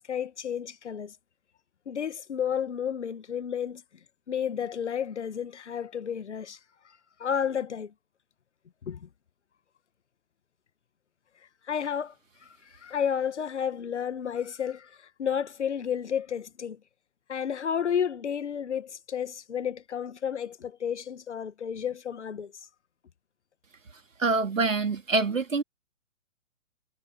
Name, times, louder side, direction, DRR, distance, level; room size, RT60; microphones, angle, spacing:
voice 1, 0.1-1.2 1.9-3.8 4.3-6.6 7.2-7.9 8.8-9.1 11.7-12.1 12.4-16.8 17.3-22.5, left 8 dB, 60° left, 1.8 m, -31 dB
voice 2, 24.2-25.6, right 3 dB, 75° right, 2.7 m, -25 dB
figure-of-eight pair, 130°, 39 cm